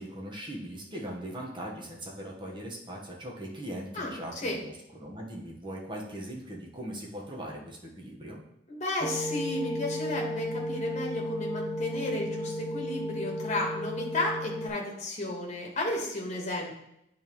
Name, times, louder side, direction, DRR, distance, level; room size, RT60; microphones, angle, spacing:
voice 1, 0.0-4.7 5.0-8.4, right 1 dB, 25° right, -2 dB, 1.3 m, -40 dB
voice 2, 3.9-4.6 8.7-16.7, left 1 dB, 40° left, -1 dB, 1.4 m, -33 dB
sound 1, 9.0-14.7, left 1 dB, 25° left, 0.7 m, -34 dB
9.1 x 3.6 x 3.1 m, 0.81 s
head